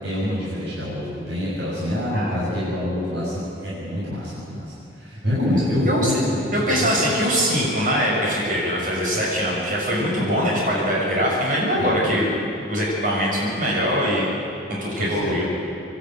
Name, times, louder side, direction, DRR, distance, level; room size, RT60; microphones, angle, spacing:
voice 1, 0.0-7.1 11.8-12.5 15.0-15.4, left 1 dB, 80° right, -9 dB, 7.1 m, -26 dB
voice 2, 6.5-12.3 12.7-14.3 14.8-15.4, equal, 45° right, -4 dB, 6.6 m, -22 dB
26.0 x 12.0 x 9.2 m, 2.6 s
head